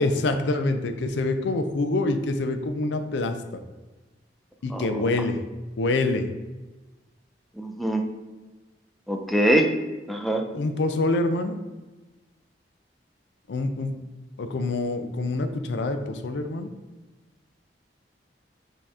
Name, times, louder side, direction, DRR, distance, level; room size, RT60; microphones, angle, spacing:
voice 1, 0.0-3.6 4.6-5.4 5.8-6.3 10.5-11.6 13.5-13.9 14.4-16.7, left 2 dB, 80° left, 7 dB, 0.5 m, -26 dB
voice 2, 7.6-8.0 9.1-9.7 10.1-10.4, right 1 dB, ahead, 3 dB, 0.4 m, -23 dB
5.3 x 2.9 x 3.6 m, 1.2 s
head